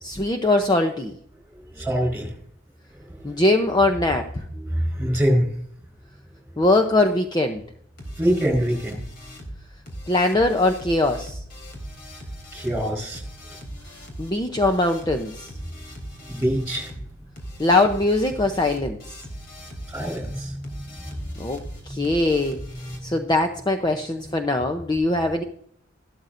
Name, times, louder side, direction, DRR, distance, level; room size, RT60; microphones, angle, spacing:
voice 1, 0.0-1.2 3.2-4.4 6.6-7.6 10.1-11.4 14.2-15.5 17.6-19.0 21.4-21.6 21.9-22.6 23.0-25.4, left 2 dB, 20° left, 5 dB, 0.7 m, -21 dB
voice 2, 1.5-2.3 2.9-3.4 4.5-5.5 8.2-9.0 12.5-13.2 16.3-16.9 19.9-21.2 21.8-22.0 22.7-23.1, equal, 10° right, 3 dB, 4.4 m, -25 dB
sound 1, 8.0-23.0, equal, 55° left, 3.7 m, -39 dB
14.0 x 12.5 x 2.6 m, 0.64 s
head